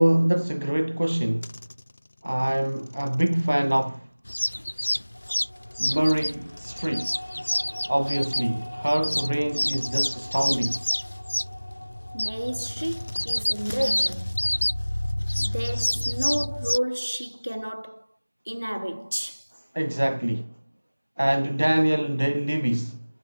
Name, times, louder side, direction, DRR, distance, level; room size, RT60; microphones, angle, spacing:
voice 1, 0.0-1.5 2.2-4.1 5.8-7.2 7.9-10.8 19.7-20.5 21.2-23.1, right 1 dB, 40° right, 0.8 m, -24 dB
sound 1, 1.1-5.0 6.0-8.6 9.1-12.0 12.7-15.1, left 2 dB, 10° left, 1.6 m, -51 dB
sound 2, 4.2-16.8, left 1 dB, 30° left, 0.6 m, -29 dB
sound 3, 5.1-17.4, equal, 75° left, 3.9 m, -44 dB
voice 2, 12.1-14.4 15.4-18.1 18.5-19.5, equal, 65° right, 4.3 m, -31 dB
figure-of-eight pair, 180°, 0 cm